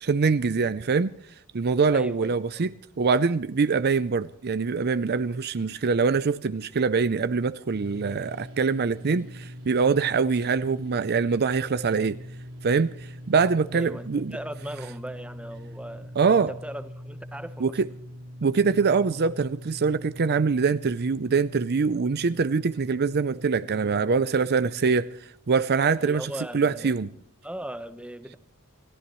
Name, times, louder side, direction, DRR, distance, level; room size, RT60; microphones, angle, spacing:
voice 1, 0.0-1.1 1.5-2.7 3.0-12.2 12.6-14.4 16.2-16.5 17.6-17.9 18.4-25.1 25.5-27.1, right 5 dB, 45° right, 0.5 m, -24 dB
voice 2, 1.9-2.7 13.7-16.1 16.5-17.7 26.0-27.1 27.4-28.4, right 1 dB, 5° right, 1.0 m, -38 dB
sound 1, 7.7-25.2, equal, 65° right, 4.2 m, -43 dB
28.5 x 14.5 x 3.1 m
head